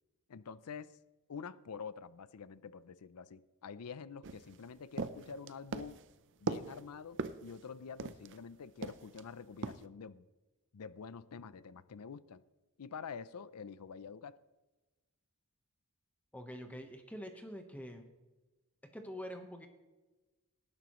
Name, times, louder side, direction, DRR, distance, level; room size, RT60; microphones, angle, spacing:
voice 1, 0.3-1.0 1.3-6.0 6.4-10.2 10.7-12.4 12.8-14.4, left 6 dB, 80° left, 17 dB, 0.5 m, -47 dB
sound 1, 4.2-8.4 8.8-9.2 9.6-9.8, right 4 dB, 55° right, 0.7 m, -40 dB
voice 2, 16.3-18.1 18.9-19.7, equal, 5° left, 4 dB, 1.1 m, -45 dB
19.0 x 11.0 x 3.1 m, 1.1 s
head